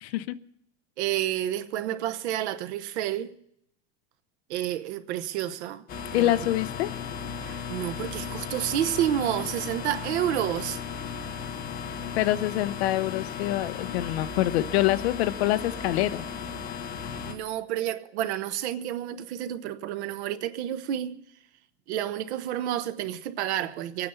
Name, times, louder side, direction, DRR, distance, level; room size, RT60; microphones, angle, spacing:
voice 1, 0.0-0.4 6.1-6.9 12.1-16.2, left 15 dB, 70° left, 0.9 m, -26 dB
voice 2, 1.0-3.3 4.5-5.8 6.1-6.3 7.4-10.8 17.2-21.2 21.9-24.1, right 12 dB, 80° right, 1.2 m, -30 dB
sound 1, 5.9-17.3, left 7 dB, 25° left, 1.3 m, -36 dB
23.0 x 9.5 x 5.6 m
supercardioid pair, 180°, 33 cm